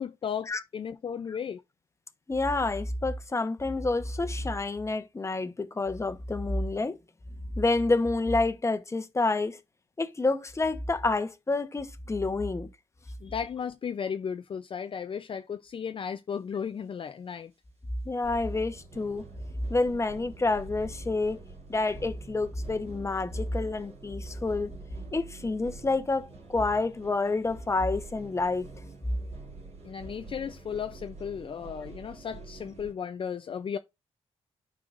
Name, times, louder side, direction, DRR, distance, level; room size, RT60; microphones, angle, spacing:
voice 1, 0.0-1.6 13.2-17.5 29.8-33.8, left 7 dB, 50° left, 0.5 m, -35 dB
voice 2, 2.3-7.0 7.6-9.6 10.0-12.7 18.1-19.2 19.7-21.4 21.7-24.7 25.1-28.7, left 3 dB, 25° left, 1.0 m, -28 dB
sound 1, 18.2-32.9, right 3 dB, 70° right, 3.6 m, -47 dB
11.5 x 4.8 x 2.5 m
cardioid pair, 75°, 12 cm